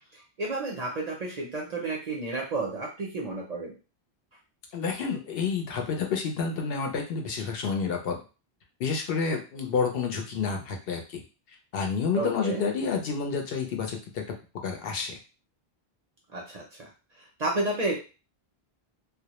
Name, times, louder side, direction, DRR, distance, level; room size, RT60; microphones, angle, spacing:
voice 1, 0.1-3.7 12.1-12.6 16.3-16.9 17.4-18.0, right 2 dB, 50° right, -1 dB, 0.5 m, -31 dB
voice 2, 4.7-8.2 8.8-11.2 11.7-14.2 14.6-15.2, left 5 dB, 70° left, 3 dB, 0.7 m, -29 dB
2.1 x 2.0 x 2.8 m, 0.32 s
omnidirectional pair, 1.1 m